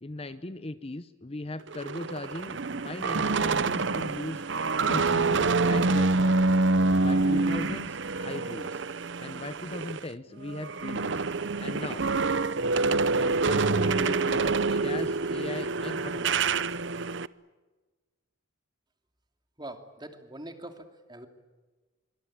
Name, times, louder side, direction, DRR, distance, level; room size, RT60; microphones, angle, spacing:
voice 1, 0.0-6.6 7.0-8.8 9.2-11.2 11.6-12.1 13.0-16.6, left 2 dB, 30° left, 12 dB, 0.8 m, -39 dB
sound 1, 1.7-10.1 10.4-17.3, right 3 dB, 60° right, 0.8 m, -26 dB
voice 2, 19.6-21.3, right 1 dB, 20° right, 6 dB, 2.8 m, -43 dB
25.0 x 24.5 x 8.8 m, 1.3 s
head